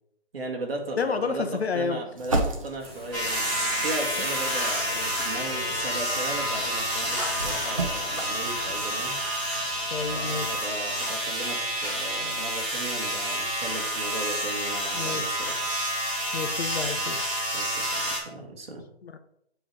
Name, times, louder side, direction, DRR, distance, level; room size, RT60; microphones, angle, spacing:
voice 1, 0.3-1.5 1.7-9.2 10.1-15.7 17.5-18.9, right 2 dB, 60° right, 1 dB, 1.9 m, -36 dB
voice 2, 1.0-2.0 9.9-10.6 14.9-15.3 16.3-17.2 19.0-19.2, left 5 dB, 70° left, 8 dB, 1.0 m, -30 dB
sound 1, 2.2-3.7 4.4-10.6, right 2 dB, 30° right, 0.8 m, -35 dB
sound 2, 2.8-9.2, equal, 25° left, 0.5 m, -41 dB
sound 3, 3.1-18.2, equal, 10° right, 1.0 m, -29 dB
7.6 x 3.4 x 5.3 m, 0.75 s
hypercardioid pair, 180°, 33 cm